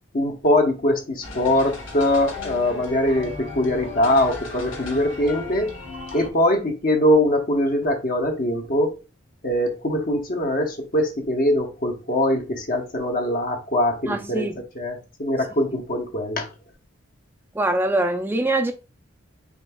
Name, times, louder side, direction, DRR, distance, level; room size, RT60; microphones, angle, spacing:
voice 1, 0.1-5.7 6.1-8.9 9.4-14.5 14.8-16.5, left 1 dB, 45° left, 0.9 m, -22 dB
sound 1, 1.2-6.3, left 3 dB, 70° left, 1.4 m, -36 dB
voice 2, 14.0-14.5 17.5-18.7, right 2 dB, 10° right, 0.4 m, -23 dB
5.2 x 3.5 x 2.2 m
head